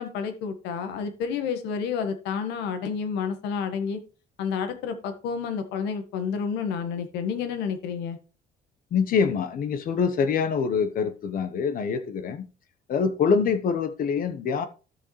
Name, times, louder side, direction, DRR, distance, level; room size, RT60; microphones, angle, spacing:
voice 1, 0.0-4.0 4.4-8.2, left 6 dB, 90° left, 1.5 m, -30 dB
voice 2, 8.9-12.5 12.9-14.7, left 6 dB, 55° left, 1.1 m, -25 dB
12.5 x 6.5 x 3.2 m
cardioid pair, 110°, 17 cm